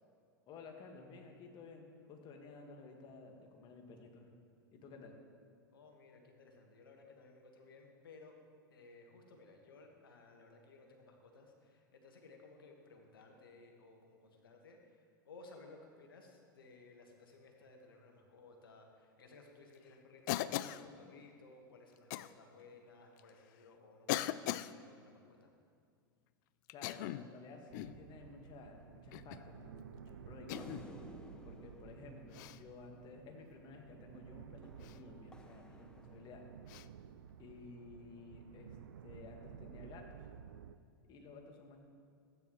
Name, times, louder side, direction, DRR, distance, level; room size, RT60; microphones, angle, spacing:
voice 1, 0.5-4.3 4.7-5.2 26.7-30.9 31.4-36.4 37.4-38.8 39.0-40.3 41.1-41.8, left 4 dB, 40° left, 2 dB, 1.7 m, -54 dB
voice 2, 5.7-8.3 8.7-25.5, left 3 dB, 75° left, 2 dB, 1.6 m, -58 dB
Cough, 20.3-20.8 22.1-22.3 23.2-23.3 24.1-24.7 26.7-27.3 27.7-28.0 29.1-29.5 30.5-30.9 32.3-32.6 34.8-35.0 36.7-36.9, left 15 dB, 55° left, 0.3 m, -39 dB
sound 1, 27.7-40.8, right 8 dB, 80° right, 0.4 m, -54 dB
sound 2, 30.5-33.2 34.6-36.7, left 1 dB, 5° left, 0.8 m, -55 dB
14.0 x 9.4 x 3.2 m, 2.3 s
hypercardioid pair, 95°, 12 cm